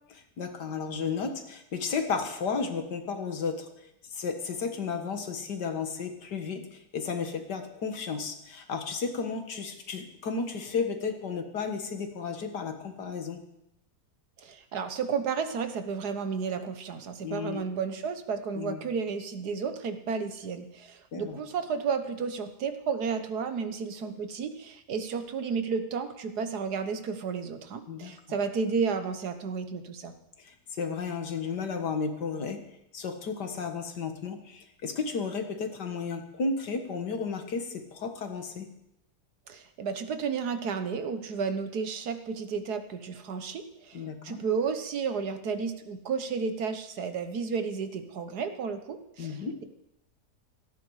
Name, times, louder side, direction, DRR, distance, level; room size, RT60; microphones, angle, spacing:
voice 1, 0.4-3.7 4.1-13.4 17.2-17.6 18.6-18.8 21.1-21.4 27.9-28.1 30.4-32.6 32.9-38.7 43.9-44.4 49.2-49.6, left 5 dB, 85° left, 6 dB, 2.2 m, -33 dB
voice 2, 14.4-30.1 39.5-49.6, right 5 dB, 70° right, 9 dB, 1.7 m, -32 dB
17.0 x 14.0 x 4.9 m, 0.82 s
omnidirectional pair, 1.8 m